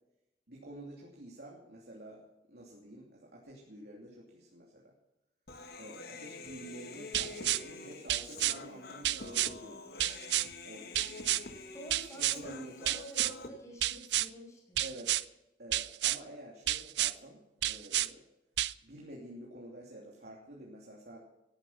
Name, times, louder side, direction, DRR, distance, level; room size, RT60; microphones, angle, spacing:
voice 1, 0.5-2.2 2.5-4.9 5.8-9.8 10.6-11.3 12.1-13.0 14.8-15.1 15.6-18.2 18.8-21.2, right 1 dB, 65° right, -3 dB, 3.0 m, -49 dB
Human voice, 5.5-13.5, left 3 dB, 60° left, 1.8 m, -47 dB
sound 1, 7.1-7.6 8.1-8.6 9.0-9.5 10.0-10.5 10.9-11.4 11.9-12.4 12.9-13.3 13.8-14.3 14.8-15.2 15.7-16.2 16.7-17.1 17.6-18.1 18.6-18.7, right 14 dB, 80° right, 0.5 m, -30 dB
voice 2, 11.3-14.8, right 1 dB, 20° left, -1 dB, 5.4 m, -49 dB
17.5 x 11.0 x 5.7 m, 0.91 s
head